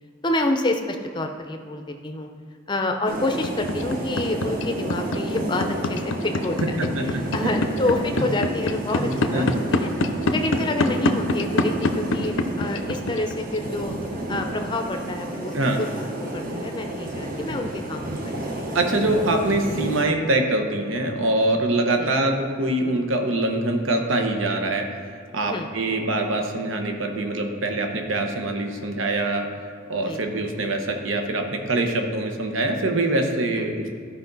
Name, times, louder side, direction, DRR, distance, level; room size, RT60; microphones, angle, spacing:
voice 1, 0.2-2.3 2.7-6.6 7.3-9.9 10.3-13.9 14.3-15.9 16.3-18.5 22.0-22.1 25.4-25.7 30.1-30.2 33.6-33.7, left 2 dB, 20° left, 4 dB, 0.6 m, -28 dB
sound 1, 3.1-20.1, right 1 dB, 45° right, 1.1 m, -31 dB
sound 2, 3.4-13.6, left 2 dB, 75° left, 0.6 m, -23 dB
voice 2, 6.6-7.1 7.4-7.5 9.0-9.5 15.5-15.8 18.7-25.1 25.3-29.5 29.9-33.9, right 2 dB, 75° right, 4 dB, 1.0 m, -24 dB
13.0 x 5.2 x 4.0 m, 2.3 s
head